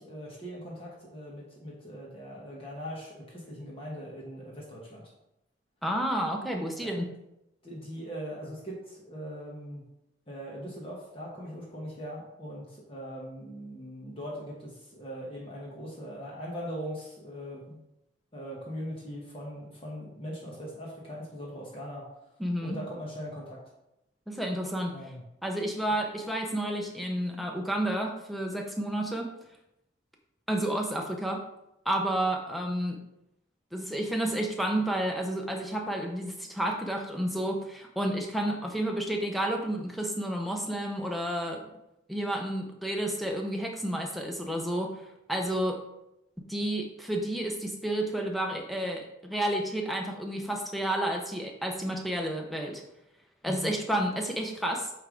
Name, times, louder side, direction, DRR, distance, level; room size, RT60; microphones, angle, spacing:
voice 1, 0.0-5.1 6.8-7.0 7.6-9.8 10.3-17.8 18.3-22.1 22.6-23.6 24.9-25.2 53.4-53.7, equal, 30° left, -4 dB, 1.2 m, -40 dB
voice 2, 5.8-7.1 22.4-22.8 24.3-24.9 25.4-29.3 30.5-31.4 31.8-33.0 33.7-41.6 42.1-45.0 45.3-45.8 46.5-52.8 53.4-54.9, right 1 dB, ahead, 1 dB, 0.7 m, -30 dB
8.5 x 3.3 x 3.8 m, 0.86 s
head